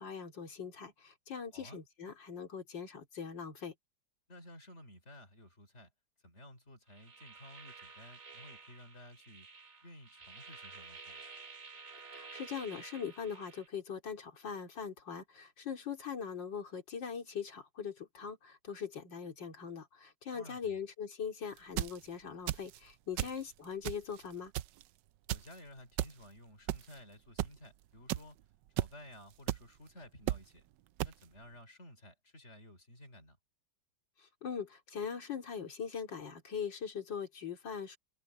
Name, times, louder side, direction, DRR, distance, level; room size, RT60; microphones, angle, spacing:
voice 1, 0.0-3.7 12.1-24.5 34.2-38.0, left 7 dB, 70° left, 3.6 m, -41 dB
voice 2, 4.3-5.9 6.2-9.5 9.8-11.2 20.3-20.8 23.1-23.3 25.3-28.4 28.8-30.7 31.0-33.4, left 1 dB, 35° left, 4.5 m, -54 dB
sound 1, 6.9-13.7, right 4 dB, 45° right, 2.7 m, -52 dB
sound 2, 21.6-22.0 22.5-22.8 23.2-23.4 23.8-24.2 24.5-24.8 25.3-25.5 26.0-26.1 26.7-26.9 27.4-27.5 28.1-28.2 28.8-28.9 29.5-29.6 30.3-30.4 31.0-31.1, right 14 dB, 75° right, 1.2 m, -33 dB
omnidirectional pair, 2.0 m